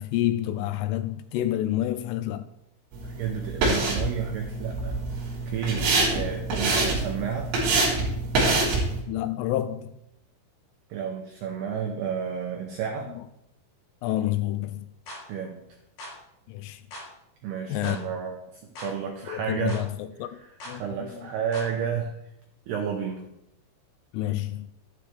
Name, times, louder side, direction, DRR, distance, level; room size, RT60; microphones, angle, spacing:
voice 1, 0.0-2.5 5.7-5.9 9.1-9.9 13.0-13.2 14.0-14.9 16.5-16.8 17.7-18.0 19.3-21.3 24.1-24.7, left 13 dB, 85° left, 3.0 m, -29 dB
sound 1, 2.9-9.0, right 2 dB, 60° right, 5.5 m, -26 dB
voice 2, 3.0-5.0 5.5-7.5 10.9-13.1 15.3-15.6 17.4-19.8 20.3-20.4 20.7-22.1 22.7-23.3, right 7 dB, 85° right, 2.3 m, -31 dB
sound 2, 15.1-15.2 16.0-16.2 16.9-17.1 17.8-18.0 18.8-18.9 19.7-19.9 20.6-20.8 21.5-21.7, left 1 dB, 55° left, 6.9 m, -40 dB
11.0 x 11.0 x 3.4 m
omnidirectional pair, 5.9 m